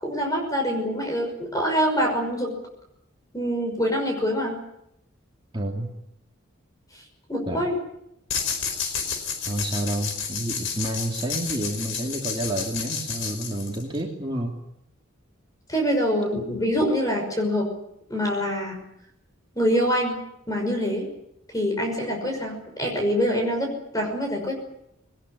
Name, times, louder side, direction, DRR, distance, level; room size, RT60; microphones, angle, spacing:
voice 1, 0.0-2.5 3.3-4.6 6.9-7.0 7.3-7.7 15.7-17.7 18.1-18.8 19.5-20.2 20.5-21.1 21.5-24.5, equal, 15° left, 2 dB, 5.9 m, -25 dB
voice 2, 5.5-5.9 7.5-7.6 9.5-14.5, right 1 dB, 25° right, -1 dB, 2.8 m, -29 dB
sound 1, 8.3-14.0, left 6 dB, 65° left, 4.9 m, -31 dB
21.5 x 20.0 x 9.8 m, 0.80 s
head